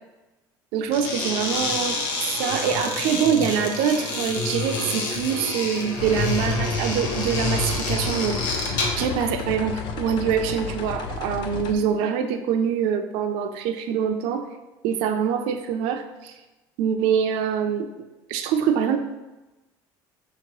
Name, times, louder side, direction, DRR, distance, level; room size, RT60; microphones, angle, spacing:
voice 1, 0.7-2.0 2.4-14.5 14.8-16.4 16.8-17.9 18.3-19.0, right 7 dB, 75° right, 6 dB, 0.4 m, -24 dB
sound 1, 0.9-9.1, left 2 dB, 90° left, 0.9 m, -28 dB
sound 2, 6.0-11.7, left 5 dB, 55° left, 0.5 m, -32 dB
5.8 x 2.9 x 2.9 m, 1.1 s
cardioid pair, 135°, 9 cm